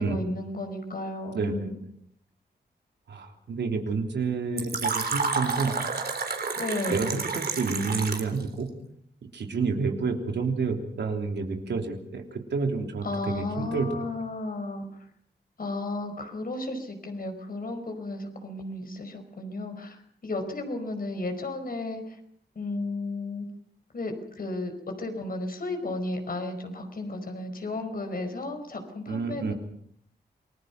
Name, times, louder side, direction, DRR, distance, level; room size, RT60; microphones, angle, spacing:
voice 1, 0.0-1.8 6.5-7.0 13.0-14.8 15.6-22.2 22.5-23.5 23.9-29.5, left 2 dB, 55° left, 6 dB, 5.0 m, -33 dB
voice 2, 3.1-5.7 6.9-8.7 9.3-13.9 29.1-29.5, right 4 dB, 90° right, 3 dB, 3.4 m, -29 dB
Fill (with liquid), 4.6-8.4, right 4 dB, 65° right, 3.6 m, -30 dB
28.0 x 20.0 x 5.9 m, 0.67 s
cardioid pair, 80°, 18 cm